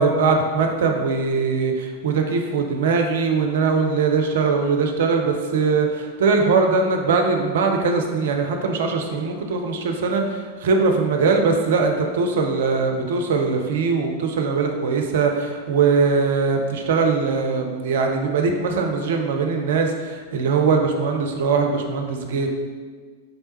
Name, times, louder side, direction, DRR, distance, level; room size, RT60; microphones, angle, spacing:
voice 1, 0.0-22.5, right 4 dB, 55° right, 3 dB, 0.5 m, -21 dB
5.3 x 3.3 x 2.9 m, 1.5 s
figure-of-eight pair, 90°, 0 cm